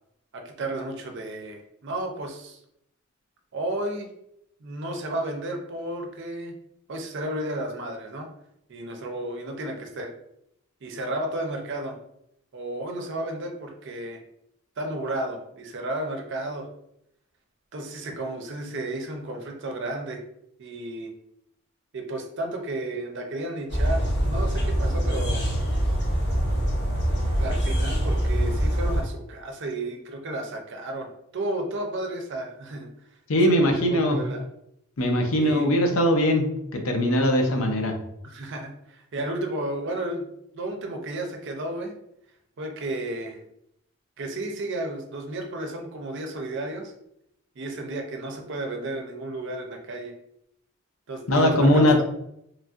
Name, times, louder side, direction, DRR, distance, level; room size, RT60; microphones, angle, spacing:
voice 1, 0.3-2.6 3.5-4.1 4.6-6.5 6.9-8.3 8.7-10.1 10.8-12.0 12.5-14.2 14.8-16.7 17.7-20.2 20.6-21.1 21.9-25.5 27.4-32.9 33.6-34.5 35.3-35.7 38.2-40.3 40.5-41.9 42.6-43.4 44.2-46.9 47.6-50.1 51.1-52.0, right 1 dB, 60° right, 3 dB, 0.6 m, -33 dB
sound 1, 23.7-29.0, equal, 60° left, 1.0 m, -24 dB
voice 2, 33.3-34.2 35.0-36.4 36.7-37.9 51.3-52.0, equal, 85° left, 3 dB, 0.6 m, -20 dB
3.1 x 2.6 x 2.4 m, 0.77 s
head